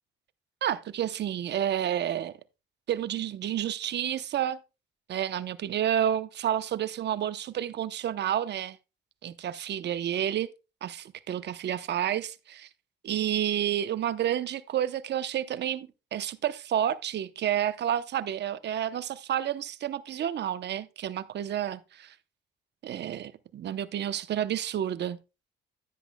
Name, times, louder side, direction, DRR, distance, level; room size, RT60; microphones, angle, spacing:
voice 1, 0.6-2.3 2.9-4.6 5.1-8.8 9.2-10.5 10.8-12.7 13.0-22.1 22.8-25.2, right 10 dB, 60° right, 0.8 m, -30 dB
10.0 x 10.0 x 2.2 m
cardioid pair, 90°, 20 cm